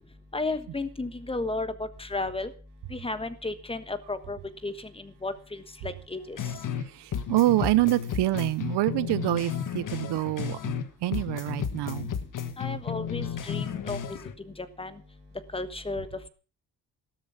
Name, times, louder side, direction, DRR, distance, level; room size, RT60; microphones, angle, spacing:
voice 1, 0.3-2.5 2.9-4.7 5.2-6.4 12.6-14.2 14.8-14.9 15.5-16.1, left 2 dB, 15° left, 11 dB, 1.4 m, -33 dB
sound 1, 6.4-6.9 7.1-10.9 11.1-14.3, left 8 dB, 50° left, 1.5 m, -33 dB
voice 2, 6.9-12.1, right 16 dB, 85° right, 17 dB, 0.9 m, -26 dB
13.5 x 13.0 x 5.8 m, 0.37 s
cardioid pair, 130°, 39 cm